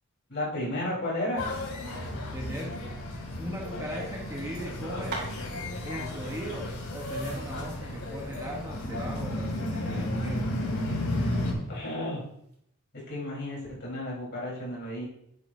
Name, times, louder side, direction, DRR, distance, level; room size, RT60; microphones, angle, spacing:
voice 1, 0.3-1.4 11.7-12.2 13.1-15.0, left 1 dB, 50° left, -4 dB, 3.9 m, -33 dB
sound 1, 1.4-11.5, left 1 dB, 90° left, 2.6 m, -33 dB
voice 2, 2.3-2.8 3.4-5.3 5.8-10.5, equal, 15° right, -1 dB, 1.0 m, -38 dB
sound 2, 4.9-12.5, right 3 dB, 45° right, 2.8 m, -46 dB
10.0 x 9.5 x 2.7 m, 0.74 s
head